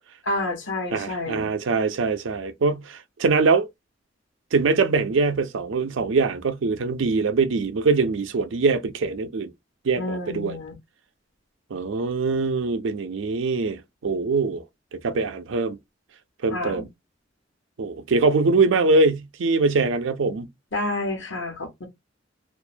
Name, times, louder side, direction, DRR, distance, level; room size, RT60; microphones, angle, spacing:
voice 1, 0.2-1.5 10.0-10.7 16.5-16.9 20.7-21.9, left 2 dB, 75° left, 1.1 m, -29 dB
voice 2, 0.9-3.7 4.5-9.5 9.8-10.6 11.7-14.6 14.9-15.8 16.4-16.9 17.8-20.5, right 4 dB, 85° right, 0.5 m, -23 dB
2.5 x 2.1 x 2.5 m
head